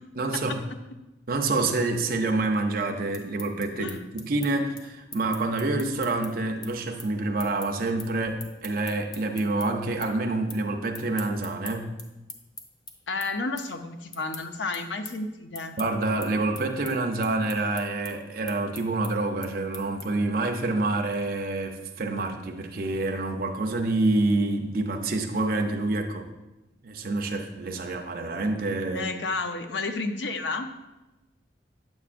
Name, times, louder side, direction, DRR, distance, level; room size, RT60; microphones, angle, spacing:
voice 1, 0.2-0.6 1.3-11.9 15.8-26.3 26.8-29.1, right 2 dB, 55° right, 3 dB, 0.6 m, -27 dB
sound 1, 2.9-9.7 10.0-10.6 10.9-20.3, left 3 dB, 20° left, 0.6 m, -43 dB
voice 2, 13.1-15.8 28.9-30.7, left 3 dB, 90° left, 6 dB, 0.7 m, -31 dB
9.0 x 7.1 x 2.5 m, 1.0 s
head